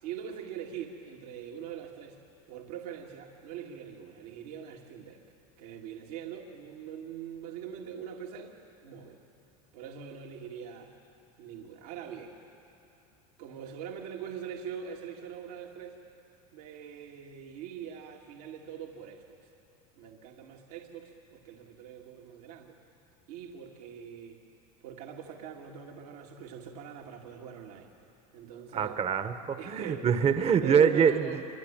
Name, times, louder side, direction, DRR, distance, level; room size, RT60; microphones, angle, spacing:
voice 1, 0.0-2.2 2.5-5.2 5.6-9.2 9.7-10.9 11.4-12.4 13.4-16.0 16.5-19.4 20.0-22.8 23.3-24.4 24.8-27.9 28.3-29.0 29.6-30.1 30.6-31.5, right 8 dB, 75° right, 0 dB, 2.3 m, -42 dB
voice 2, 28.7-31.3, right 7 dB, 30° right, 9 dB, 1.2 m, -24 dB
26.0 x 24.5 x 8.9 m, 2.8 s
hypercardioid pair, 95°, 20 cm